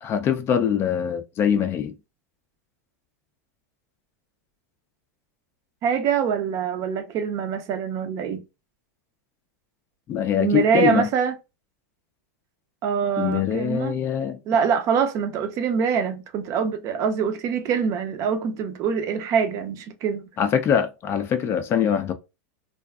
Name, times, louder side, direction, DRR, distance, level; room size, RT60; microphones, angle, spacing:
voice 1, 0.0-2.0 10.1-11.1 13.2-14.4 20.4-22.1, left 8 dB, 30° left, 0.4 m, -23 dB
voice 2, 5.8-8.4 10.4-11.3 12.8-14.0 14.5-20.3, right 7 dB, 40° right, 0.5 m, -24 dB
2.5 x 2.3 x 2.3 m
hypercardioid pair, 120°, 8 cm